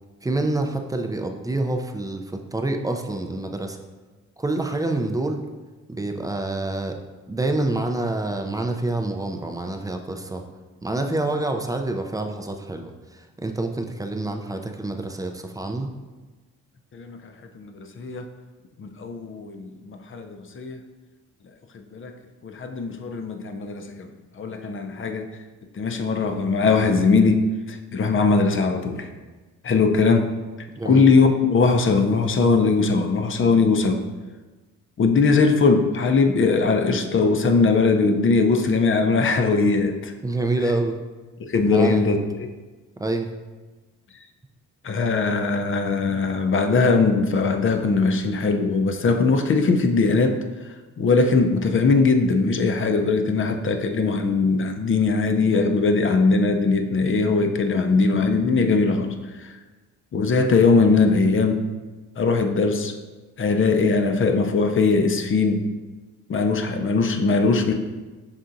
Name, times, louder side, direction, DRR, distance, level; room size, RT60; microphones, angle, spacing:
voice 1, 0.2-3.8 4.4-5.4 5.9-7.0 7.3-10.4 10.8-15.9 30.8-31.1 40.2-41.0 41.7-42.0 43.0-43.3, right 2 dB, 10° right, 4 dB, 0.4 m, -27 dB
voice 2, 17.5-18.3 18.8-20.8 21.7-22.1 22.4-24.1 24.4-25.3 25.7-29.1 29.6-30.3 30.8-34.0 35.0-40.1 41.4-42.5 44.8-50.4 51.0-59.5 60.1-61.6 62.2-63.0 63.4-65.7 66.3-67.7, left 4 dB, 35° left, 6 dB, 0.6 m, -20 dB
5.7 x 3.5 x 2.6 m, 1.3 s
supercardioid pair, 70°, 35 cm